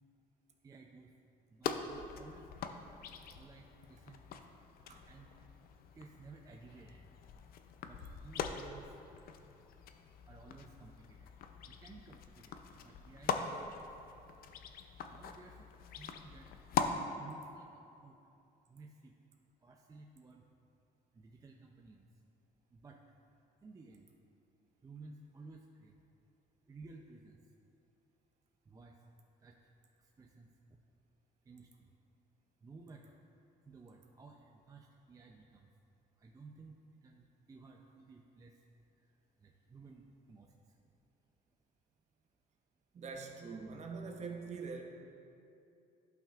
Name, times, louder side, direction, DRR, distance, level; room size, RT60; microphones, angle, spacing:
voice 1, 0.6-1.1 1.5-2.5 3.3-4.2 5.0-5.3 5.9-7.1 7.8-8.9 10.3-11.3 11.6-13.8 15.1-16.5 17.2-18.1 18.7-19.1 19.6-20.4 21.1-22.1 22.7-23.0 23.6-24.1 24.8-26.0 26.7-27.4 28.7-29.0 29.4-29.6 30.0-30.5 31.5-31.9 32.6-33.2 33.7-35.7 36.2-38.5 39.4-40.5, right 3 dB, 20° right, 1 dB, 0.4 m, -56 dB
sound 1, 1.6-16.9, left 7 dB, 60° left, 0.5 m, -42 dB
voice 2, 42.9-44.8, right 4 dB, 40° right, 2 dB, 0.9 m, -43 dB
11.5 x 5.7 x 2.4 m, 2.7 s
cardioid pair, 110°, 17 cm